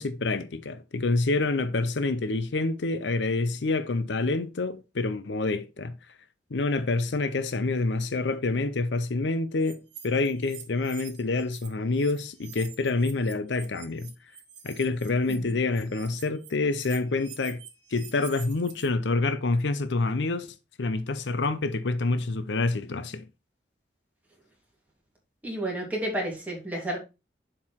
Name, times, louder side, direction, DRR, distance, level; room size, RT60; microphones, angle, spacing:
voice 1, 0.0-6.0 6.5-14.1 14.6-17.6 17.9-23.3, left 3 dB, 75° left, 0.6 m, -27 dB
sound 1, 9.6-11.7 11.9-18.9, right 8 dB, 80° right, 1.7 m, -47 dB
voice 2, 25.4-27.0, right 1 dB, 10° right, 3.0 m, -31 dB
7.3 x 4.8 x 4.4 m
head